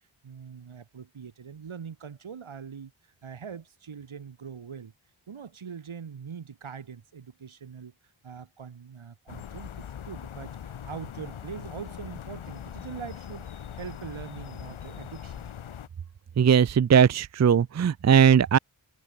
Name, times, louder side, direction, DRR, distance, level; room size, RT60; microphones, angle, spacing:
voice 1, 0.2-2.9 3.2-4.9 5.3-7.9 8.2-15.5, right 6 dB, 80° right, 2.4 m, -42 dB
sound 1, 9.3-15.9, left 9 dB, 80° left, 1.2 m, -41 dB
voice 2, 16.4-18.6, right 7 dB, 35° right, 0.5 m, -19 dB
cardioid pair, 50°, 47 cm